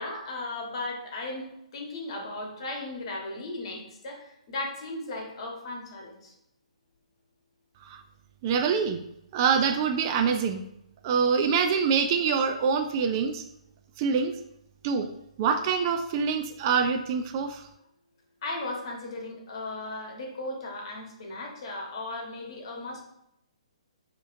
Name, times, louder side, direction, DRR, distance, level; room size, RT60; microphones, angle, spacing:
voice 1, 0.0-6.3 18.4-23.0, left 2 dB, 50° left, 0 dB, 1.2 m, -36 dB
voice 2, 8.4-9.0 9.3-10.6 11.0-13.4 14.0-14.3 14.8-15.1 15.4-17.6, right 6 dB, 35° right, 6 dB, 0.3 m, -25 dB
6.1 x 2.9 x 2.6 m, 0.80 s
figure-of-eight pair, 130°, 4 cm